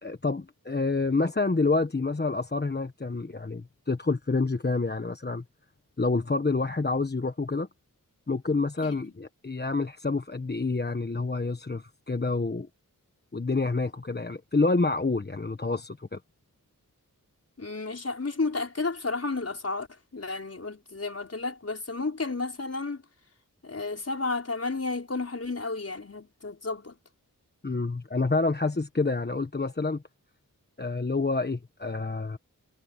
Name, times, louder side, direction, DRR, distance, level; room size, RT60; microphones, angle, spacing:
voice 1, 0.0-5.4 6.0-7.7 8.3-12.7 13.3-16.2 27.6-30.0 30.8-32.4, left 3 dB, 30° left, 1.3 m, -28 dB
voice 2, 8.8-9.1 17.6-19.9 20.1-23.0 23.6-27.0, left 3 dB, 45° left, 4.8 m, -32 dB
wide cardioid pair, 90°, 34 cm